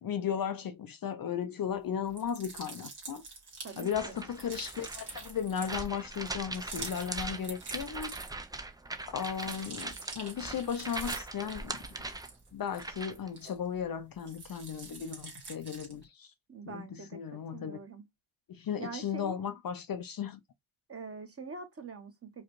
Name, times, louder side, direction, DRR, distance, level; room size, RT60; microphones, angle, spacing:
voice 1, 0.0-3.2 3.8-8.1 9.1-11.8 12.5-16.3 16.7-17.8 18.5-20.4, left 8 dB, 50° left, 0.5 m, -36 dB
sound 1, 2.1-8.6 8.9-13.8 14.2-16.0, right 4 dB, 55° right, 1.7 m, -46 dB
voice 2, 3.6-4.2 16.5-17.2 17.5-18.0 18.8-19.5 20.9-22.4, right 4 dB, 30° right, 1.1 m, -44 dB
sound 2, 3.8-13.3, right 2 dB, 10° right, 0.3 m, -41 dB
4.9 x 2.3 x 3.0 m
wide cardioid pair, 105°, 47 cm